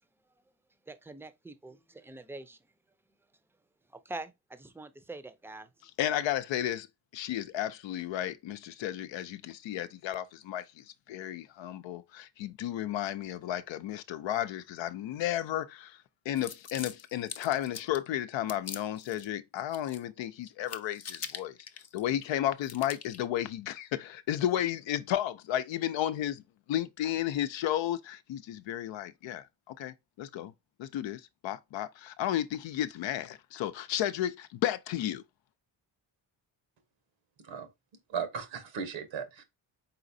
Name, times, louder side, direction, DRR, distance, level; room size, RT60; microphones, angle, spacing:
voice 1, 0.9-2.6 4.0-5.7, right 2 dB, 5° right, 0.6 m, -44 dB
voice 2, 5.8-6.9 7.1-16.0 16.3-21.5 21.9-26.4 26.7-30.5 30.8-35.2, left 12 dB, 70° left, 0.7 m, -33 dB
sound 1, 16.4-18.1 18.5-19.3 19.6-20.2 20.5-22.3 22.6-23.2, left 7 dB, 35° left, 0.6 m, -43 dB
voice 3, 38.1-39.4, right 6 dB, 75° right, 1.2 m, -36 dB
4.2 x 3.9 x 2.6 m
supercardioid pair, 55°, 46 cm